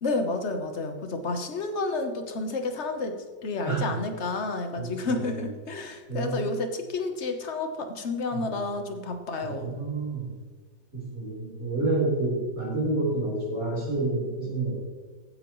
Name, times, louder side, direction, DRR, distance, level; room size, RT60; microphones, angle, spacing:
voice 1, 0.0-9.7, left 3 dB, 45° left, 6 dB, 1.1 m, -30 dB
voice 2, 3.7-4.0 4.8-5.5 6.1-6.4 8.3-8.6 9.4-10.3 10.9-14.8, right 2 dB, 40° right, -4 dB, 4.3 m, -29 dB
16.0 x 9.6 x 3.1 m, 1.5 s
omnidirectional pair, 2.1 m